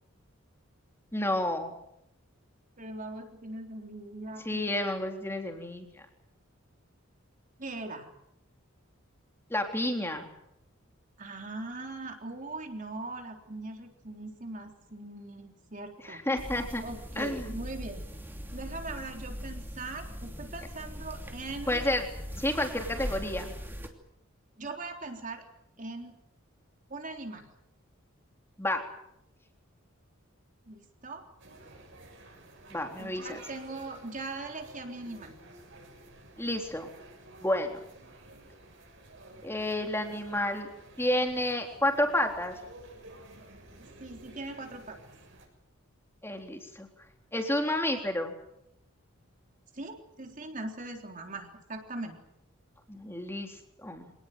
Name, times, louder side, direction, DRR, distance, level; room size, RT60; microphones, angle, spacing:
voice 1, 1.1-1.7 4.5-5.9 9.5-10.3 16.0-16.8 17.2-17.5 21.7-22.0 22.4-23.5 28.6-28.9 32.7-33.4 36.4-36.9 37.4-37.8 39.4-40.7 41.0-42.5 46.2-46.9 47.3-48.3 52.9-54.1, left 1 dB, 10° left, 4 dB, 3.6 m, -30 dB
voice 2, 2.8-4.7 7.6-8.1 11.2-16.2 16.8-18.1 18.5-21.8 24.6-25.4 25.8-26.1 26.9-27.5 30.7-31.2 33.0-35.4 44.0-45.0 49.7-52.2, right 2 dB, 40° right, 3 dB, 3.6 m, -40 dB
sound 1, 16.4-23.9, equal, 10° right, 2.8 m, -40 dB
sound 2, 31.4-45.5, right 2 dB, 60° right, 7.0 m, -52 dB
26.0 x 19.0 x 9.3 m, 0.80 s
head